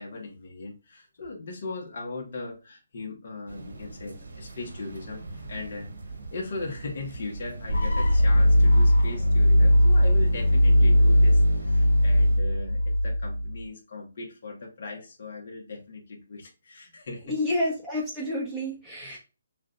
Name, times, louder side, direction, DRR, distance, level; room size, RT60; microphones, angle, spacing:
voice 1, 0.0-17.3 18.9-19.2, left 3 dB, 55° left, -1 dB, 1.5 m, -39 dB
sound 1, 3.5-12.4, right 3 dB, 85° right, 1.7 m, -42 dB
sound 2, 7.7-13.6, left 1 dB, 90° left, 1.1 m, -19 dB
voice 2, 17.3-19.2, left 1 dB, 10° left, -6 dB, 1.0 m, -29 dB
6.1 x 2.7 x 2.4 m, 0.30 s
hypercardioid pair, 160°, 0 cm